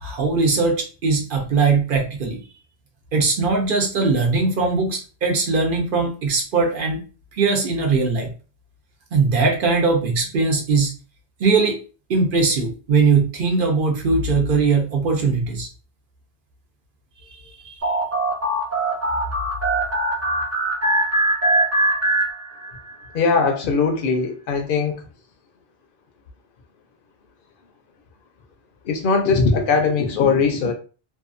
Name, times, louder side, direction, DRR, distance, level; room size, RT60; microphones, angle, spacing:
voice 1, 0.0-2.4 3.1-7.0 7.4-8.3 9.1-10.9 11.4-11.8 12.1-15.7 17.3-17.7, right 4 dB, 55° right, 0.8 m, -20 dB
sound 1, 17.8-22.9, right 2 dB, 25° right, 0.3 m, -22 dB
voice 2, 23.1-25.0 28.8-30.7, left 4 dB, 60° left, 0.7 m, -20 dB
2.7 x 2.3 x 2.4 m
omnidirectional pair, 1.1 m